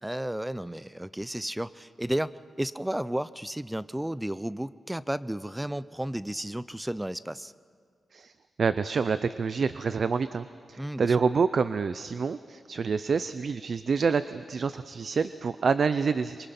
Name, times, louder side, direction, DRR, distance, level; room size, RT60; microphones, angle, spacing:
voice 1, 0.0-7.5 10.8-11.3, right 1 dB, 5° right, 16 dB, 0.5 m, -33 dB
voice 2, 8.6-16.5, right 5 dB, 55° right, 13 dB, 0.5 m, -27 dB
25.5 x 24.0 x 5.9 m, 2.1 s
wide cardioid pair, 120°, 0 cm